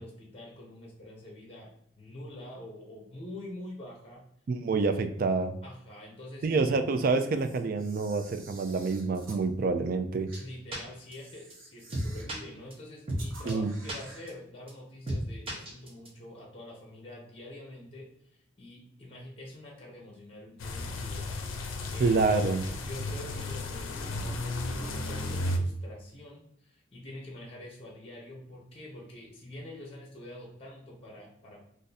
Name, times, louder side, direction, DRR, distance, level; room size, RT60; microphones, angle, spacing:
voice 1, 0.0-1.7 2.0-4.2 5.6-6.5 10.4-31.6, left 1 dB, 30° left, -1 dB, 0.7 m, -46 dB
voice 2, 4.5-5.6 6.4-10.3 13.4-13.7 22.0-22.6, right 4 dB, 45° right, 8 dB, 0.3 m, -27 dB
Camera, 6.9-9.4 10.3-10.4 11.1-12.4 13.1-14.3, right 3 dB, 85° right, 0.9 m, -51 dB
sound 1, 10.3-10.4 10.7-10.8 11.1-11.2 11.5-11.6 11.9-12.4 12.7-12.8 13.1-13.2 13.5-13.6 13.9-14.0 14.3-14.4 14.7-14.8 15.1-15.2 15.5-16.1, right 1 dB, 30° right, 0.8 m, -33 dB
sound 2, 20.6-25.6, left 2 dB, 90° left, 0.5 m, -34 dB
2.6 x 2.5 x 3.9 m, 0.75 s
head